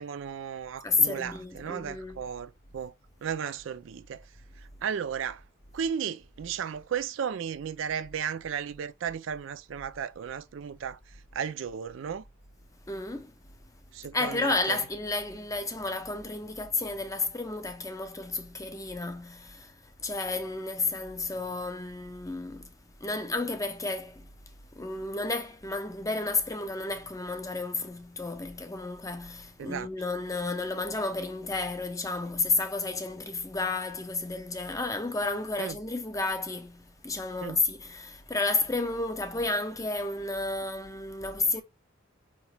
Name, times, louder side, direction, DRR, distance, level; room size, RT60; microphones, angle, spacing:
voice 1, 0.0-2.9 3.2-4.2 4.8-5.4 5.7-11.0 11.3-12.2 13.9-14.8 29.6-29.9 35.6-35.7 37.4-37.6, right 7 dB, 65° right, 0.3 m, -34 dB
voice 2, 0.8-2.2 12.9-13.3 14.1-22.7 23.0-24.3 24.7-41.6, left 3 dB, 15° left, 0.5 m, -31 dB
4.7 x 3.0 x 3.3 m
head